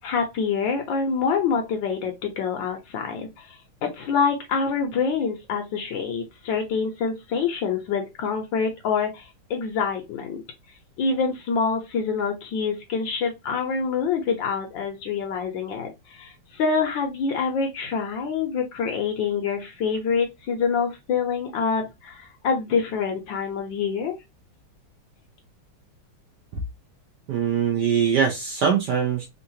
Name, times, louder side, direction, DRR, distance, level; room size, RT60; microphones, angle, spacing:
voice 1, 0.0-10.4 11.0-24.2, left 5 dB, 65° left, 1.4 m, -26 dB
voice 2, 27.3-29.3, right 7 dB, 70° right, 1.1 m, -22 dB
3.7 x 2.4 x 2.7 m
omnidirectional pair, 2.4 m